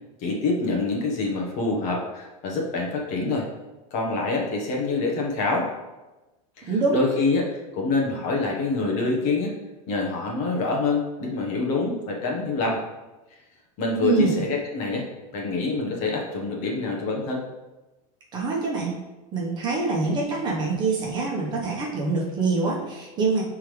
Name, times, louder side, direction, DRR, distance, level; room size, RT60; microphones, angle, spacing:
voice 1, 0.2-3.5 3.9-5.7 6.6-9.5 9.9-12.8 13.8-15.1 15.3-17.4, left 3 dB, 40° left, -1 dB, 1.4 m, -26 dB
voice 2, 14.0-14.4 18.3-18.9 19.3-23.4, right 4 dB, 25° right, -3 dB, 1.3 m, -25 dB
9.6 x 3.7 x 3.4 m, 1.1 s
supercardioid pair, 165°, 18 cm